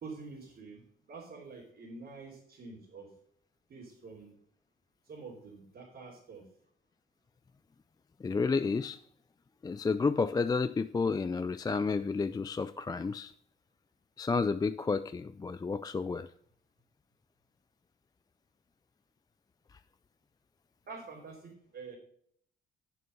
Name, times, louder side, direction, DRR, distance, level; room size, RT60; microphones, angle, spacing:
voice 1, 0.0-3.1 3.7-4.3 5.0-6.5 20.9-22.0, right 4 dB, 55° right, -4 dB, 3.2 m, -47 dB
voice 2, 8.2-9.0 9.6-13.3 14.2-16.3, left 4 dB, 20° left, 12 dB, 0.4 m, -31 dB
8.4 x 7.4 x 5.3 m, 0.64 s
cardioid pair, 90°, 20 cm